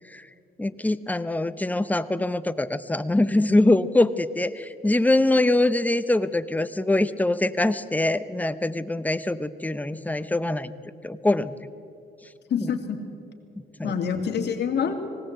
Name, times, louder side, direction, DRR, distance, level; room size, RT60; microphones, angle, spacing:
voice 1, 0.6-10.7 11.0-11.5 12.6-12.7 13.8-14.0, left 2 dB, 10° left, 13 dB, 0.8 m, -23 dB
voice 2, 12.5-13.0 13.8-14.9, left 7 dB, 60° left, 4 dB, 2.4 m, -26 dB
19.5 x 17.0 x 8.0 m, 2.6 s
cardioid pair, 90°, 20 cm